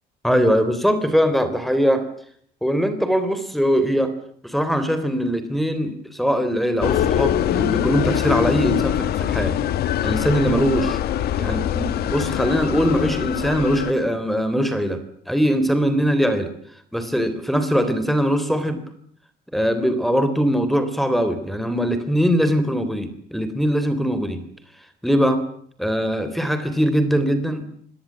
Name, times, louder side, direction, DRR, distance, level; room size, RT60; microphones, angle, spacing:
voice 1, 0.2-2.1 2.6-4.1 4.4-9.6 10.0-11.0 11.4-16.5 16.9-18.8 19.5-24.4 25.0-25.4 25.8-27.7, equal, ahead, 9 dB, 3.4 m, -21 dB
sound 1, 6.8-13.9, left 11 dB, 70° left, 1.7 m, -23 dB
25.5 x 18.5 x 7.5 m, 0.62 s
cardioid pair, 110°, 17 cm